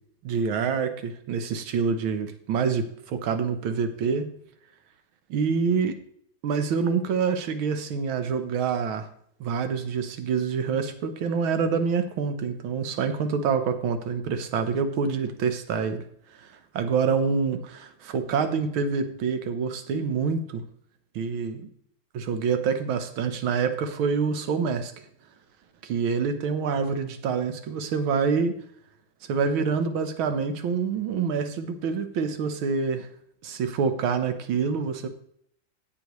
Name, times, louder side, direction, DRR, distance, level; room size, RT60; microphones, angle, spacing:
voice 1, 0.2-4.3 5.3-6.0 6.4-9.1 9.4-16.0 16.4-20.6 21.2-21.6 22.1-24.9 25.8-28.5 29.3-33.1 33.4-35.1, right 5 dB, 75° right, 9 dB, 1.8 m, -26 dB
17.5 x 6.9 x 3.1 m, 0.66 s
omnidirectional pair, 2.3 m